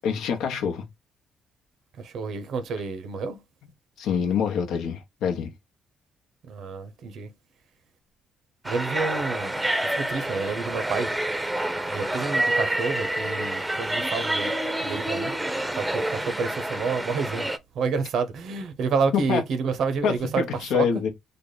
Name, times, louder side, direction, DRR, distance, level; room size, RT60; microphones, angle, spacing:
voice 1, 0.0-0.8 4.0-5.5 19.1-19.4 20.0-21.1, left 7 dB, 85° left, 0.7 m, -25 dB
voice 2, 2.0-3.4 6.5-7.3 8.6-9.5 10.0-11.1 11.9-14.5 14.8-15.3 15.8-17.5 17.8-20.4 20.7-20.8, right 5 dB, 70° right, 0.7 m, -29 dB
sound 1, 8.6-17.6, right 1 dB, 10° right, 0.6 m, -28 dB
3.4 x 2.0 x 3.8 m
cardioid pair, 90°, 0 cm